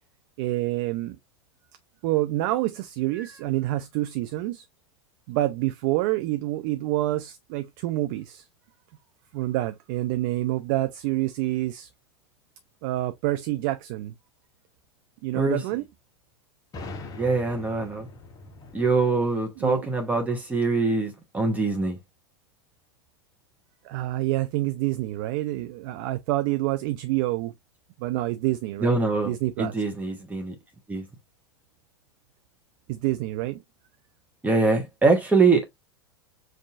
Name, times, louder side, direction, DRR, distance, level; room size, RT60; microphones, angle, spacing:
voice 1, 0.4-1.2 2.0-4.6 5.3-8.4 9.3-11.9 12.8-14.1 15.2-15.9 19.6-19.9 23.8-27.5 28.0-29.0 29.3-29.8 32.9-33.6, right 16 dB, 45° right, 0.5 m, -27 dB
voice 2, 15.3-15.8 17.2-18.1 18.7-22.0 28.8-30.5 30.9-31.0 34.4-35.6, right 3 dB, 10° right, 0.9 m, -23 dB
sound 1, 16.7-20.4, left 2 dB, 25° left, 0.9 m, -43 dB
5.4 x 2.5 x 2.4 m
figure-of-eight pair, 90°, 14 cm